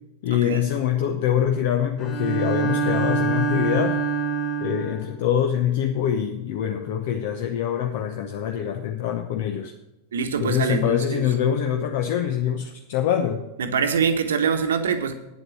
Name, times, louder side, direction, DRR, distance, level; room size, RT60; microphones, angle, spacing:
voice 1, 0.2-4.0 4.6-9.7 10.4-13.4, left 9 dB, 50° left, 5 dB, 0.8 m, -24 dB
Bowed string instrument, 2.0-5.1, right 5 dB, 35° left, 1.7 m, -25 dB
voice 2, 10.1-11.3 13.6-15.1, right 6 dB, 65° right, 8 dB, 1.1 m, -24 dB
9.4 x 7.8 x 6.2 m, 0.95 s
figure-of-eight pair, 90°, 0 cm